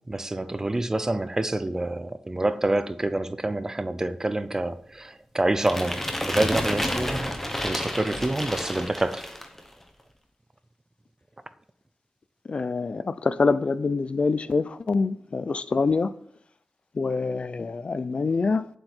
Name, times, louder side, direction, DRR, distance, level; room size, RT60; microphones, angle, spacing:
voice 1, 0.1-7.3 7.6-9.3, right 2 dB, 20° right, 0.5 m, -27 dB
sound 1, 5.6-9.6, left 1 dB, 10° left, 1.0 m, -30 dB
voice 2, 12.5-16.1 17.0-18.7, left 4 dB, 40° left, 0.5 m, -25 dB
8.8 x 7.9 x 4.5 m
wide cardioid pair, 170°, 3 cm